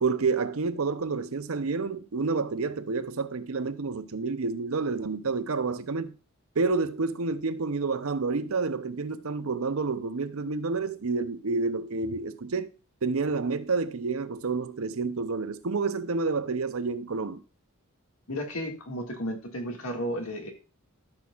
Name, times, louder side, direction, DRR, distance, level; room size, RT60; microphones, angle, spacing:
voice 1, 0.0-6.2 6.6-12.7 13.0-17.4, right 4 dB, 75° right, 0.7 m, -29 dB
voice 2, 18.3-20.5, equal, 85° left, 2.0 m, -33 dB
13.0 x 6.2 x 2.4 m
head